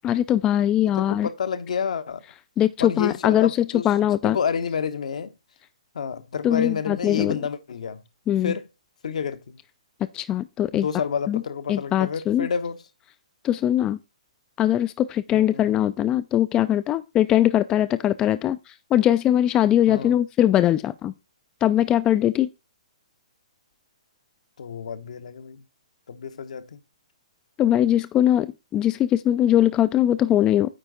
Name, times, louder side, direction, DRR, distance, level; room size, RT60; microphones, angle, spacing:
voice 1, 0.0-1.3 2.6-3.5 3.8-4.4 6.4-7.4 8.3-8.5 10.1-10.9 11.3-11.4 11.7-12.5 13.4-14.0 14.6-21.1 21.6-22.5 27.6-30.7, left 11 dB, 20° left, 0.3 m, -21 dB
voice 2, 0.9-2.2 2.8-5.3 5.9-8.0 8.4-8.7 9.0-9.6 10.7-12.8 15.3-15.8 19.9-20.2 24.6-25.6 26.1-26.8, left 6 dB, 70° left, 0.9 m, -29 dB
9.1 x 4.6 x 3.8 m
hypercardioid pair, 135°, 4 cm